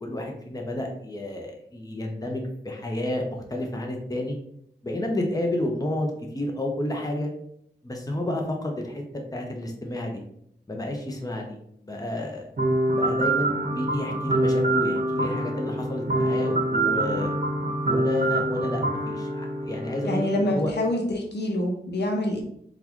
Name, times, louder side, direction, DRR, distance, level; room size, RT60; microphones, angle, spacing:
voice 1, 0.0-4.4 4.8-7.3 7.8-9.0 9.3-10.2 10.7-11.6 11.8-12.5 12.9-17.3 17.8-20.7, left 1 dB, 20° left, 1 dB, 0.7 m, -30 dB
sound 1, 12.6-20.4, right 1 dB, 55° right, 0.7 m, -25 dB
voice 2, 20.0-22.4, left 1 dB, 75° left, 1 dB, 0.7 m, -26 dB
3.8 x 2.3 x 3.0 m, 0.71 s
wide cardioid pair, 70°, 18 cm